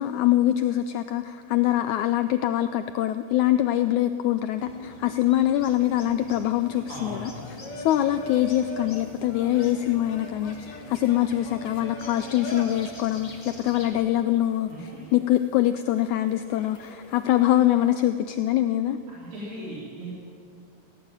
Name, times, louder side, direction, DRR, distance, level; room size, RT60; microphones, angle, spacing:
voice 1, 0.0-14.7 15.1-19.0, left 13 dB, 85° left, 11 dB, 1.7 m, -24 dB
sound 1, 4.6-13.9, left 1 dB, 15° left, 1.9 m, -44 dB
sound 2, 5.6-18.1, left 1 dB, 55° left, 3.6 m, -43 dB
voice 2, 6.9-7.4 14.7-15.0 19.1-20.1, right 1 dB, 75° right, -7 dB, 5.5 m, -38 dB
18.0 x 16.5 x 8.9 m, 2.3 s
omnidirectional pair, 4.0 m